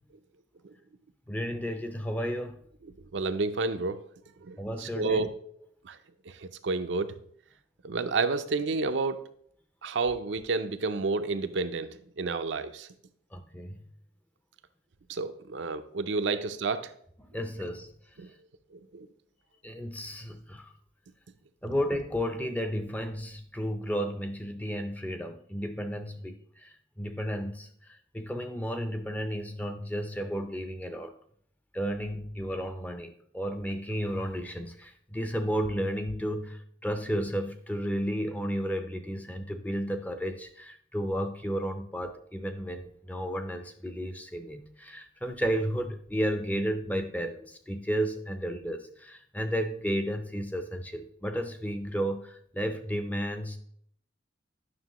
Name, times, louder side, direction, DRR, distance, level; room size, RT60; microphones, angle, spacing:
voice 1, 1.3-2.6 4.6-5.3 13.3-13.8 16.3-16.4 17.2-17.9 19.6-20.7 21.6-27.7 28.1-31.1 31.7-53.6, equal, 10° left, 8 dB, 0.5 m, -33 dB
voice 2, 3.1-4.0 4.4-5.3 5.9-6.0 6.6-7.1 7.8-9.2 9.8-11.9 12.2-12.9 15.1-16.9 18.2-18.3 18.9-19.1, right 3 dB, 75° right, 9 dB, 0.5 m, -30 dB
9.5 x 5.9 x 3.0 m, 0.64 s
head